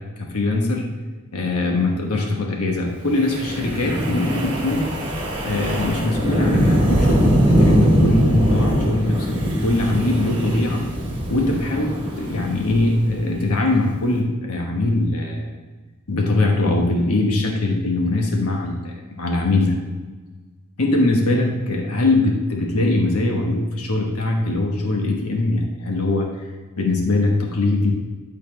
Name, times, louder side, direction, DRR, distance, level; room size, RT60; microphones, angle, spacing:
voice 1, 0.2-0.8 1.3-4.9 5.4-10.8 11.3-15.5 16.1-19.7 20.8-26.5 26.8-27.9, left 2 dB, 90° left, 0 dB, 1.2 m, -21 dB
Wind, 3.1-13.4, equal, 20° right, 1.3 m, -21 dB
12.5 x 4.2 x 3.3 m, 1.3 s
head